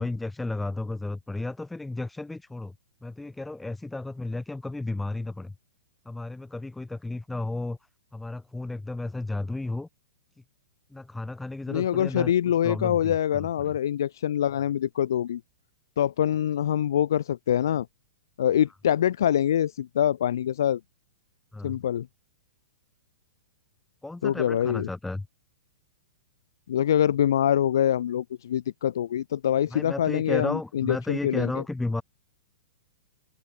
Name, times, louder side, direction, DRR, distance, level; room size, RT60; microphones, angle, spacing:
voice 1, 0.0-2.7 3.0-5.5 6.0-7.8 8.1-9.9 10.9-12.3 12.6-13.7 21.5-21.8 24.0-25.3 29.7-32.0, left 2 dB, 5° left, 2.6 m, -33 dB
voice 2, 11.7-15.4 16.0-17.9 18.4-20.8 21.6-22.1 24.2-24.9 26.7-31.6, left 10 dB, 70° left, 0.9 m, -25 dB
open air
hypercardioid pair, 160°, 2 cm